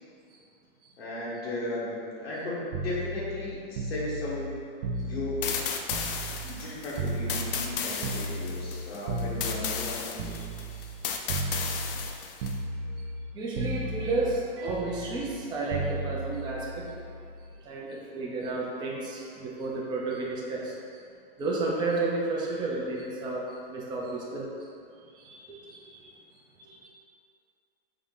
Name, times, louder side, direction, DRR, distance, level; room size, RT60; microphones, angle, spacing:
voice 1, 1.0-4.6 5.0-5.7 6.4-10.4, left 2 dB, 90° left, -6 dB, 1.2 m, -35 dB
sound 1, 2.7-6.7 7.0-11.0 11.3-12.1 12.4-13.3 13.5-17.5 18.8-19.0, right 2 dB, 75° right, 0.5 m, -35 dB
sound 2, 5.4-12.6, left 7 dB, 65° left, 0.4 m, -34 dB
voice 2, 10.2-10.9 11.3-11.4 11.8-12.0 12.4-12.5 13.3-16.9 17.6-21.0 21.4-24.7 25.0-26.1 26.6-26.9, right 2 dB, 15° right, -4 dB, 0.4 m, -33 dB
3.7 x 2.1 x 3.7 m, 2.4 s
hypercardioid pair, 125°, 30 cm